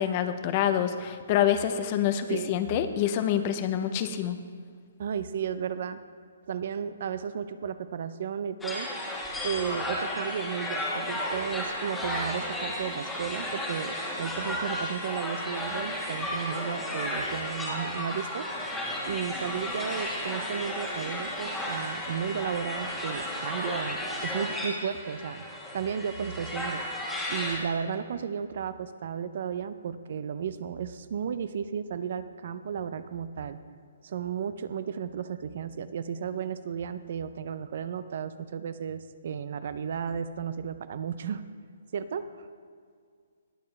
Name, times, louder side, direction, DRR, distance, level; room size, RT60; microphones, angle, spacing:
voice 1, 0.0-4.4, left 10 dB, 30° left, 10 dB, 0.6 m, -26 dB
voice 2, 2.3-2.6 5.0-6.0 6.5-8.9 9.4-18.5 19.0-25.4 25.7-26.8 27.3-33.6 34.0-41.4 41.9-42.5, right 7 dB, 55° right, 13 dB, 0.5 m, -34 dB
sound 1, 8.6-27.6, left 1 dB, 5° left, 1.4 m, -33 dB
20.0 x 6.7 x 3.2 m, 2.1 s
hypercardioid pair, 160°, 0 cm